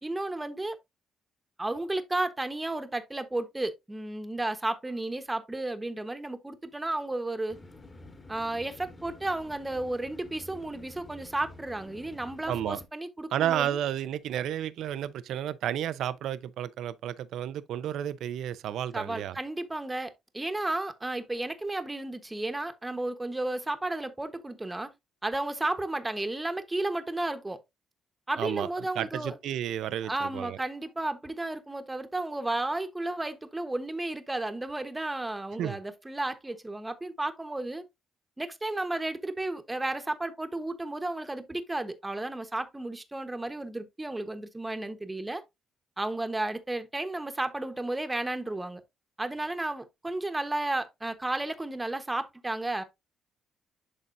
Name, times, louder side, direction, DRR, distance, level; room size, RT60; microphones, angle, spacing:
voice 1, 0.0-0.8 1.6-7.6 8.3-13.8 18.9-24.9 25.2-27.6 28.3-29.3 30.0-37.8 38.4-45.4 46.0-48.8 49.2-52.8, right 2 dB, 15° right, 1.1 m, -33 dB
sound 1, 7.5-12.9, left 2 dB, 25° left, 1.7 m, -49 dB
voice 2, 12.5-12.8 13.3-19.4 28.4-30.6 35.6-35.8, right 11 dB, 80° right, 0.6 m, -32 dB
11.0 x 4.0 x 2.6 m
cardioid pair, 90°, 0 cm